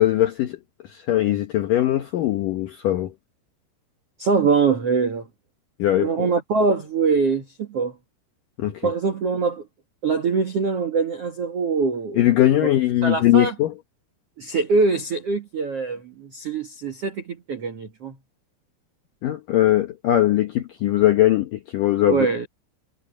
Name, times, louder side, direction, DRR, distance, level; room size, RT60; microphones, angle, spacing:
voice 1, 0.0-3.1 5.8-6.3 8.6-8.8 12.2-13.7 19.2-22.3, left 13 dB, 75° left, 2.0 m, -20 dB
voice 2, 4.2-5.3 6.0-7.9 8.8-9.6 10.0-12.3 13.0-13.5 14.4-18.2 22.1-22.5, right 4 dB, 75° right, 1.4 m, -23 dB
omnidirectional pair, 5.4 m